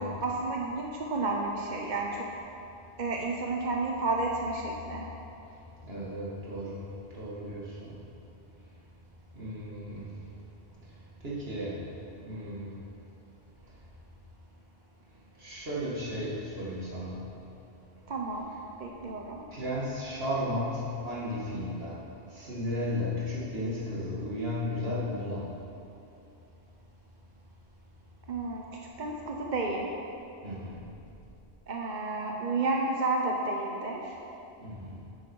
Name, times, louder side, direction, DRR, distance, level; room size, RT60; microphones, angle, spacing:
voice 1, 0.0-2.2 3.0-5.0 18.1-18.5 18.8-19.5 28.3-28.6 29.0-29.9 31.7-34.2, right 3 dB, 50° right, 0 dB, 0.9 m, -31 dB
voice 2, 5.8-6.9 7.1-8.0 9.3-10.1 11.2-11.9 12.2-12.8 15.4-17.3 19.5-22.0 22.3-25.6 30.4-30.9 34.6-35.0, left 1 dB, 70° right, -7 dB, 2.5 m, -34 dB
10.0 x 8.9 x 4.6 m, 2.8 s
omnidirectional pair, 1.1 m